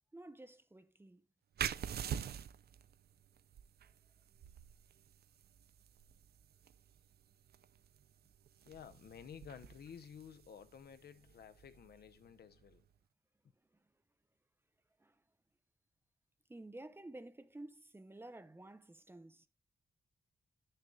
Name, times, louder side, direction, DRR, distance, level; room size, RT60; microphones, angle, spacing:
voice 1, 0.1-1.3 13.5-13.9 15.0-15.2 16.5-19.5, right 2 dB, 15° right, 0.7 m, -52 dB
sound 1, 1.6-12.9, right 9 dB, 80° right, 0.5 m, -47 dB
voice 2, 8.6-12.9, left 8 dB, 80° left, 0.8 m, -53 dB
10.5 x 6.7 x 2.4 m
wide cardioid pair, 155°, 16 cm